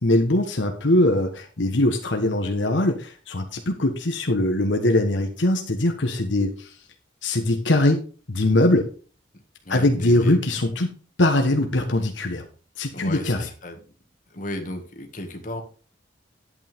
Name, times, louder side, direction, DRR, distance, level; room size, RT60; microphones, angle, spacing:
voice 1, 0.0-6.7 7.2-8.0 8.3-8.9 9.7-10.9 11.2-12.5 12.8-13.4, left 1 dB, 80° left, 4 dB, 1.3 m, -21 dB
voice 2, 9.6-10.4 12.9-13.8 14.3-15.6, left 1 dB, 45° left, 3 dB, 2.0 m, -34 dB
11.5 x 8.6 x 3.6 m, 0.38 s
head